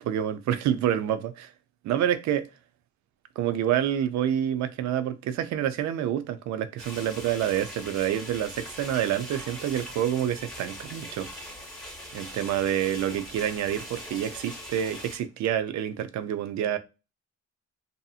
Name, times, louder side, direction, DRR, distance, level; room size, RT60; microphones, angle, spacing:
voice 1, 0.0-1.5 1.8-2.5 3.4-11.3 12.1-16.8, right 10 dB, 65° right, 0.5 m, -28 dB
sound 1, 6.8-15.2, equal, ahead, 1.0 m, -41 dB
2.7 x 2.5 x 2.4 m
cardioid pair, 90°, 30 cm